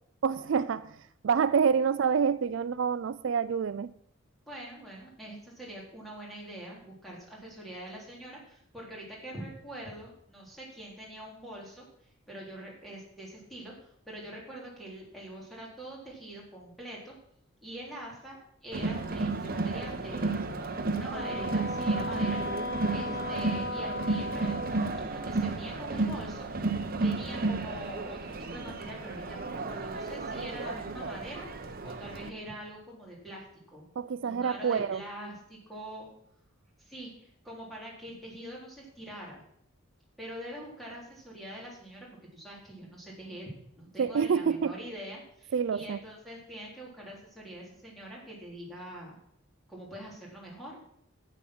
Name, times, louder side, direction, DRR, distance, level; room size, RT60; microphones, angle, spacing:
voice 1, 0.2-0.9 1.2-3.9 34.0-35.0 44.0-44.7 45.5-46.0, right 6 dB, 60° right, 0.4 m, -27 dB
voice 2, 4.5-11.9 12.3-17.1 17.6-22.4 22.7-26.5 27.0-31.5 31.8-33.8 34.2-36.1 36.8-39.4 40.2-49.2 49.7-50.8, right 1 dB, ahead, 3.6 m, -44 dB
Crowd, 18.7-32.3, right 3 dB, 45° right, 0.9 m, -32 dB
Wind instrument woodwind instrument, 21.1-25.6, left 1 dB, 80° left, 2.2 m, -36 dB
11.5 x 8.6 x 6.0 m
head